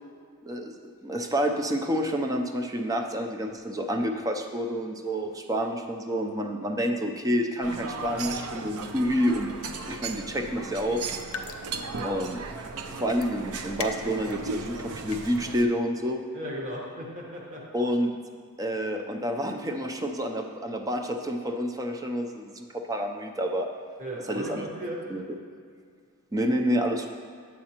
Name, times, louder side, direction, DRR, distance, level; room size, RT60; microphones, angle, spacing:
voice 1, 0.4-0.7 1.0-9.5 9.8-11.0 12.0-12.4 12.9-16.2 17.7-18.1 18.6-23.7 24.3-24.6 25.1-25.4 26.3-27.1, equal, 15° right, 4 dB, 0.5 m, -28 dB
sound 1, 7.6-15.6, right 4 dB, 80° right, 0.5 m, -36 dB
sound 2, 11.1-11.7 12.0-12.1 13.1-13.3 13.8-14.3 14.9-15.4, left 5 dB, 80° left, 0.6 m, -37 dB
voice 2, 16.3-17.6 24.0-25.0, equal, 35° right, -3 dB, 1.2 m, -36 dB
9.6 x 7.4 x 2.9 m, 2.2 s
head